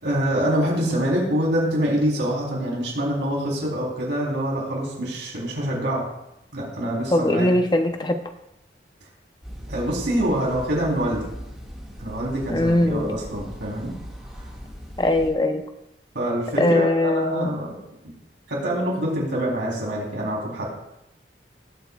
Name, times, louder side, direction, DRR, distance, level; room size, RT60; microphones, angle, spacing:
voice 1, 0.0-6.1 6.5-7.5 9.7-11.3 12.0-13.9 16.1-17.8 18.5-20.7, right 1 dB, 90° right, -3 dB, 3.6 m, -25 dB
voice 2, 7.1-8.2 12.5-13.2 15.0-15.6 16.6-17.5, left 1 dB, 25° left, 6 dB, 0.7 m, -21 dB
sound 1, 9.4-15.3, equal, ahead, 1.9 m, -39 dB
19.0 x 7.9 x 2.4 m, 0.88 s
head